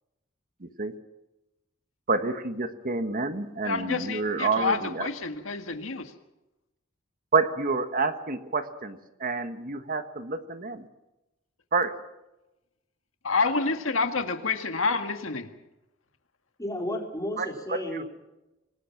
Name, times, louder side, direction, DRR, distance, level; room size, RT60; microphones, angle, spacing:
voice 1, 0.6-0.9 2.1-5.1 7.3-10.9 11.7-11.9 17.4-18.0, right 4 dB, 45° right, 9 dB, 1.5 m, -28 dB
voice 2, 3.6-6.1 13.2-15.5, left 4 dB, 80° left, 7 dB, 1.8 m, -28 dB
voice 3, 16.6-18.0, left 1 dB, 15° left, 1 dB, 4.4 m, -32 dB
26.0 x 20.0 x 6.0 m, 0.98 s
head